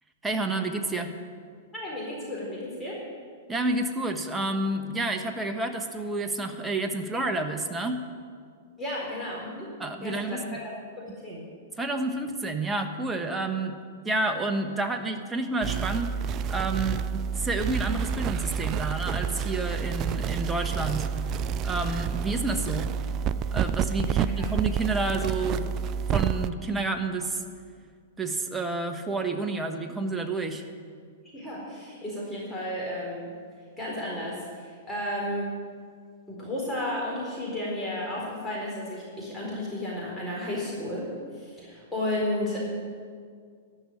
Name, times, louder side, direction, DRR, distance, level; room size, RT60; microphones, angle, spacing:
voice 1, 0.2-1.1 3.5-8.0 9.8-10.6 11.8-13.8 14.0-21.1 21.6-22.9 23.5-25.7 26.1-27.4 28.2-30.6, right 2 dB, 10° right, 5 dB, 1.3 m, -29 dB
voice 2, 1.7-3.0 8.8-9.7 10.0-11.4 24.0-24.5 31.3-33.3 33.8-35.5 36.3-42.6, left 1 dB, 10° left, -5 dB, 4.3 m, -33 dB
sound 1, 15.6-26.5, right 7 dB, 35° right, 0.4 m, -29 dB
13.0 x 6.4 x 9.8 m, 2.1 s
hypercardioid pair, 110°, 0 cm